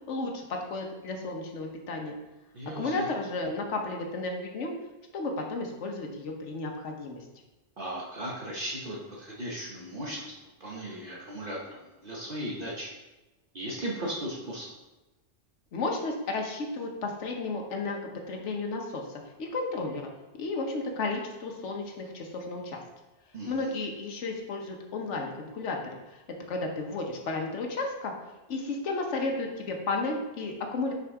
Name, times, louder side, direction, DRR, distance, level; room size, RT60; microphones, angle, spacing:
voice 1, 0.1-2.1 2.8-4.7 5.1-7.2 15.7-22.8 23.5-26.2 26.5-28.1 28.5-30.9, left 3 dB, 80° left, 2 dB, 1.3 m, -33 dB
voice 2, 2.5-3.1 7.8-10.3 10.6-12.9 13.5-14.7 23.3-23.7, right 1 dB, 50° right, -4 dB, 1.1 m, -37 dB
6.0 x 4.0 x 4.7 m, 1.1 s
omnidirectional pair, 1.2 m